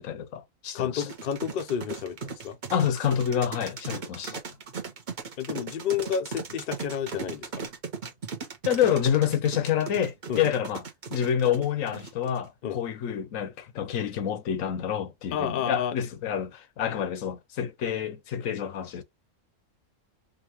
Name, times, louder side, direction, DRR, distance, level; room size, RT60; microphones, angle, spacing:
voice 1, 0.0-1.0 2.7-4.4 8.6-10.8 11.1-19.0, left 9 dB, 80° left, 1.1 m, -28 dB
voice 2, 0.7-2.6 5.4-7.5 10.3-10.4 12.6-12.8 15.3-16.0, left 8 dB, 55° left, 0.6 m, -30 dB
sound 1, 1.0-12.5, right 5 dB, 40° right, 1.0 m, -37 dB
5.1 x 2.6 x 2.9 m
omnidirectional pair, 1.4 m